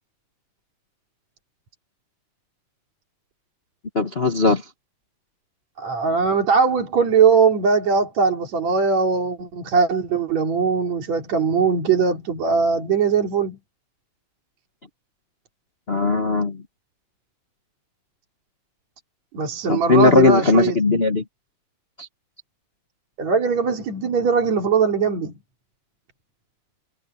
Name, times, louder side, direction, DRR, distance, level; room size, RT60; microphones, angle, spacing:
voice 1, 3.9-4.6 15.9-16.6 19.7-21.2 22.0-22.1, left 3 dB, 80° left, 0.5 m, -18 dB
voice 2, 5.8-13.6 19.3-21.0 23.2-25.3, right 5 dB, 60° right, 4.4 m, -20 dB
omnidirectional pair, 3.7 m